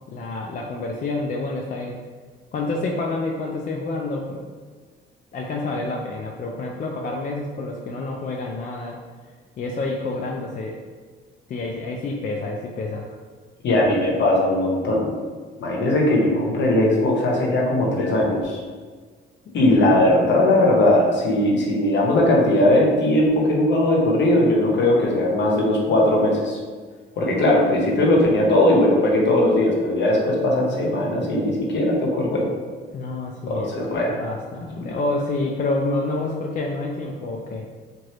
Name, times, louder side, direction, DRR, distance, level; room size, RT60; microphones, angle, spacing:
voice 1, 0.1-2.0 2.5-4.4 5.3-9.0 9.6-10.8 11.5-13.2 19.5-19.6 19.9-20.1 30.8-31.0 32.9-33.9 34.2-37.7, left 2 dB, 45° left, 0 dB, 0.4 m, -28 dB
voice 2, 13.6-15.1 15.6-18.6 19.5-26.6 27.2-32.5 33.5-34.2 34.8-34.9, left 1 dB, 65° left, -1 dB, 0.8 m, -19 dB
2.8 x 2.5 x 3.1 m, 1.5 s
cardioid pair, 90°, 20 cm